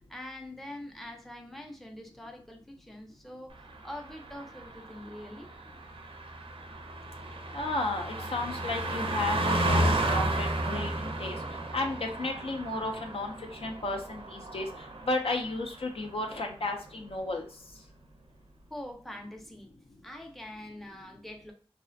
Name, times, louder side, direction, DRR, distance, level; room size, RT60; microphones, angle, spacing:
voice 1, 0.1-5.5 18.7-19.7 20.0-21.5, left 1 dB, ahead, 2 dB, 0.5 m, -44 dB
Car passing by, 3.6-15.5 15.8-16.1, right 1 dB, 65° right, 0.4 m, -33 dB
voice 2, 7.5-11.4 11.7-14.7 15.1-17.4, left 2 dB, 70° left, 2 dB, 0.5 m, -33 dB
2.4 x 2.0 x 2.5 m, 0.42 s
wide cardioid pair, 45°, 10 cm